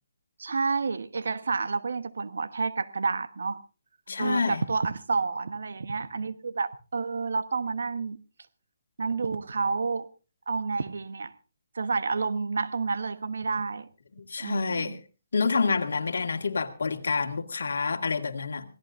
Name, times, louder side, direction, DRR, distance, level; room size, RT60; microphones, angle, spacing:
voice 1, 0.4-3.6 4.2-8.2 9.0-10.1 10.5-11.3 11.7-13.9 14.4-15.0, right 4 dB, 80° right, 1.2 m, -29 dB
voice 2, 4.1-4.6 14.2-15.0 15.3-18.7, left 4 dB, 75° left, 2.0 m, -28 dB
25.5 x 17.0 x 2.6 m
hypercardioid pair, 155°, 0 cm